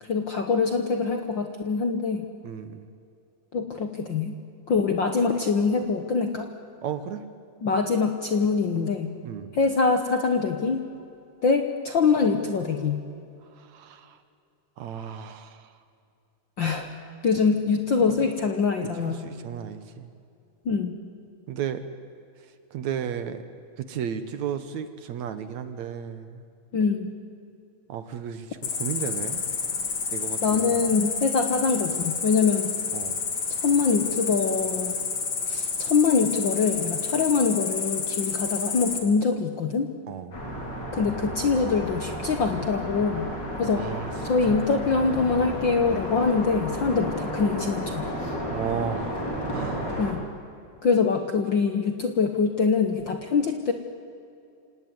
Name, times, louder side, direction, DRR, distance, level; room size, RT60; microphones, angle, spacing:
voice 1, 0.0-2.3 3.5-4.3 4.7-6.5 7.6-9.1 9.5-10.8 11.4-13.0 16.6-16.9 17.2-19.3 20.6-20.9 26.7-27.1 30.4-32.8 33.6-35.0 35.5-39.9 40.9-43.3 43.6-43.9 44.2-48.1 50.0-50.2 50.8-53.7, left 5 dB, 65° left, 6 dB, 1.1 m, -24 dB
voice 2, 2.4-2.9 6.8-7.2 9.2-9.5 13.7-14.2 14.8-15.7 19.0-20.1 21.5-21.8 22.7-23.4 23.8-26.4 27.9-29.4 30.1-30.9 32.9-33.2 40.1-40.4 43.8-44.1 44.5-44.7 46.9-47.0 48.5-49.2 49.5-50.0, right 8 dB, 65° right, 11 dB, 2.1 m, -34 dB
Cricket, 28.6-39.0, left 5 dB, 45° left, 3.3 m, -29 dB
sound 1, 40.3-50.1, equal, 30° left, 3.8 m, -32 dB
27.5 x 18.0 x 9.5 m, 2.5 s
omnidirectional pair, 4.0 m